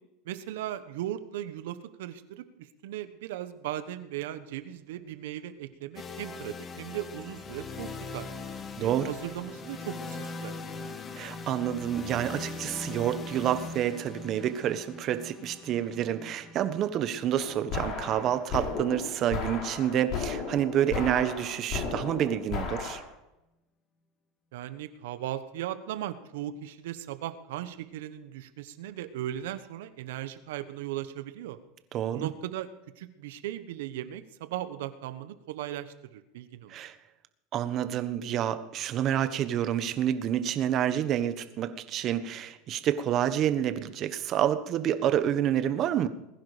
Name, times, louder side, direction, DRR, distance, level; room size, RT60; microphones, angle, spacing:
voice 1, 0.2-8.3 8.8-10.6 24.5-31.6 32.1-32.7 33.0-36.7, right 12 dB, 80° right, 12 dB, 1.2 m, -37 dB
sound 1, 6.0-19.8, left 3 dB, 25° left, 1.5 m, -41 dB
voice 2, 8.8-9.1 11.1-23.0 31.9-32.3 36.7-37.0 37.5-46.1, right 10 dB, 45° right, 11 dB, 1.4 m, -28 dB
sound 2, 17.4-23.0, left 5 dB, 50° left, 4.3 m, -35 dB
21.0 x 10.5 x 5.1 m, 0.91 s
supercardioid pair, 120°, 0 cm